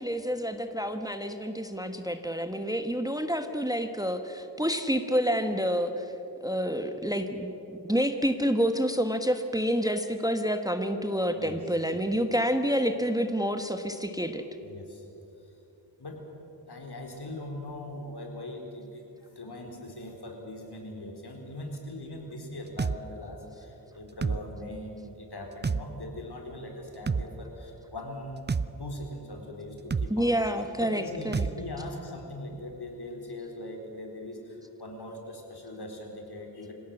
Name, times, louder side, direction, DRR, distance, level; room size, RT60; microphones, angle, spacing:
voice 1, 0.0-6.1 6.4-14.4 30.1-31.5, equal, 10° right, 7 dB, 1.2 m, -28 dB
voice 2, 14.6-15.0 16.0-16.2 16.6-30.3 30.8-36.7, left 1 dB, 65° left, 1 dB, 4.3 m, -41 dB
sound 1, 22.8-23.0 24.2-24.4 25.6-25.8 27.1-27.3 28.5-28.7 29.9-30.1 31.3-31.5, right 5 dB, 25° right, 0.5 m, -27 dB
25.5 x 16.5 x 7.9 m, 3.0 s
wide cardioid pair, 75°, 43 cm